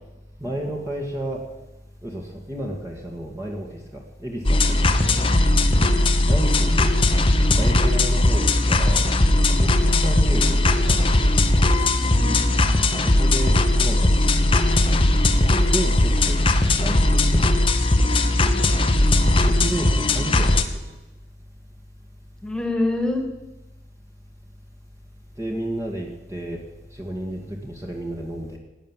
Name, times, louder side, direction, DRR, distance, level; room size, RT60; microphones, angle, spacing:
voice 1, 0.4-1.4 2.0-5.2 6.2-7.0 7.6-9.1 9.5-11.3 13.0-14.8 15.5-17.6 19.4-20.9 25.4-26.6 26.9-28.6, right 1 dB, 15° right, 0 dB, 1.9 m, -32 dB
sound 1, 4.4-20.6, left 2 dB, 30° left, 1.0 m, -18 dB
voice 2, 5.7-6.1 9.8-10.0 12.2-12.4 15.4-15.7 18.4-18.7 22.4-23.2, left 2 dB, 5° left, 3 dB, 2.2 m, -28 dB
17.0 x 9.8 x 7.3 m, 1.0 s
head